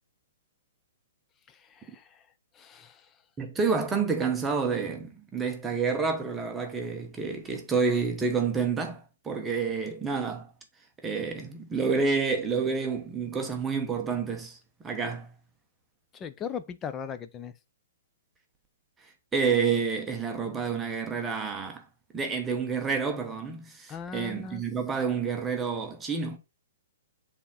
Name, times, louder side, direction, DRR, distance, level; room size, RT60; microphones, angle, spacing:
voice 1, 1.5-2.3 2.5-3.2 16.1-17.5 23.9-24.6, left 7 dB, 15° left, 0.5 m, -39 dB
voice 2, 3.4-10.5 11.0-14.6 14.8-15.3 19.3-21.8 22.1-26.4, right 5 dB, 10° right, 1.0 m, -29 dB
7.0 x 3.5 x 4.2 m
hypercardioid pair, 160°, 0 cm